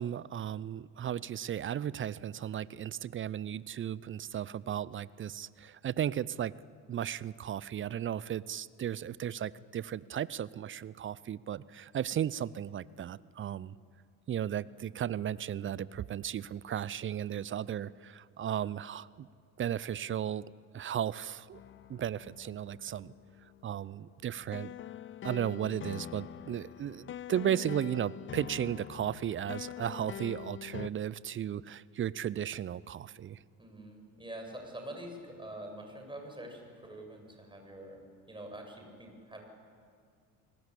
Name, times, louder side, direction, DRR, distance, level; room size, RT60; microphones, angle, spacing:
voice 1, 0.0-6.5 6.9-13.8 14.3-19.3 19.6-20.4 20.7-21.6 21.9-23.1 23.6-24.7 25.2-33.4, right 10 dB, 25° right, 20 dB, 0.6 m, -35 dB
sound 1, 21.5-30.9, left 10 dB, 25° left, 0.7 m, -45 dB
voice 2, 33.6-38.0 38.3-39.4, right 1 dB, 10° right, 2 dB, 8.0 m, -45 dB
30.0 x 20.0 x 8.5 m, 2.3 s
figure-of-eight pair, 60°, 47 cm